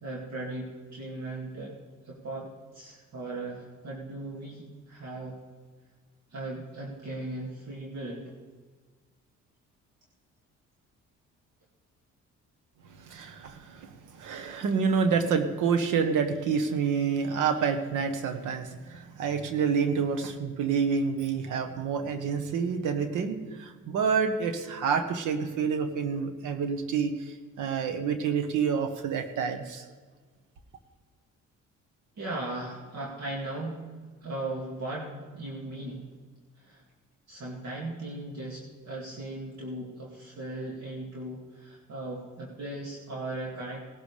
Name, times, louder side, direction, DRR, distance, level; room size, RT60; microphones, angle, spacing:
voice 1, 0.0-1.8 2.0-5.4 6.3-8.3 32.2-33.9 34.2-36.1 36.6-36.8 37.3-43.8, right 2 dB, 60° right, -4 dB, 2.4 m, -37 dB
voice 2, 12.9-29.9, right 6 dB, 90° right, 7 dB, 1.3 m, -28 dB
18.5 x 12.0 x 3.4 m, 1.4 s
cardioid pair, 90°, 30 cm